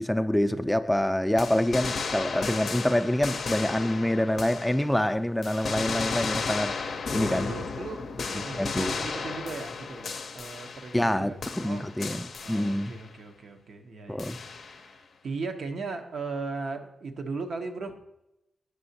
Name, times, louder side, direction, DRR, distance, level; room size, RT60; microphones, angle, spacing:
voice 1, 0.0-7.6 8.3-8.9 10.9-12.9 14.1-14.4, left 1 dB, 5° left, 0.4 m, -26 dB
sound 1, 1.4-5.1 5.4-11.1 11.4-13.1 14.2-14.9, left 4 dB, 65° left, 0.5 m, -34 dB
voice 2, 7.2-11.8 12.4-17.9, right 4 dB, 70° right, 0.7 m, -38 dB
7.7 x 5.6 x 2.7 m
supercardioid pair, 40°, 0 cm